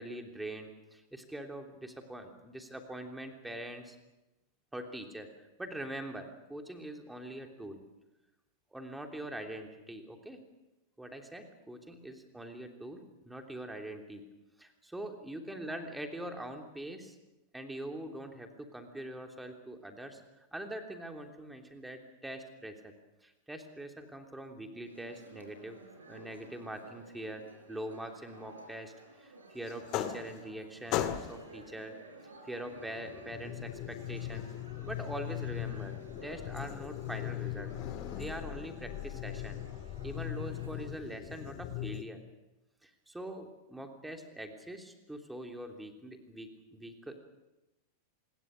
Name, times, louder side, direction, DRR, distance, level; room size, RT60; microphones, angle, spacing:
voice 1, 0.0-4.0 4.7-7.8 8.7-10.4 11.0-14.2 14.6-17.2 17.5-22.9 23.2-25.8 26.1-27.4 27.7-28.9 29.2-31.9 32.2-34.5 34.8-37.7 38.1-39.6 40.0-42.2 42.8-47.2, right 1 dB, 5° right, 4 dB, 3.2 m, -43 dB
sound 1, 24.8-40.8, right 2 dB, 75° right, 4.6 m, -54 dB
sound 2, 29.7-30.6 30.9-31.6 32.7-42.0, left 13 dB, 40° left, 1.8 m, -39 dB
26.0 x 21.0 x 6.6 m, 0.97 s
figure-of-eight pair, 90°, 0 cm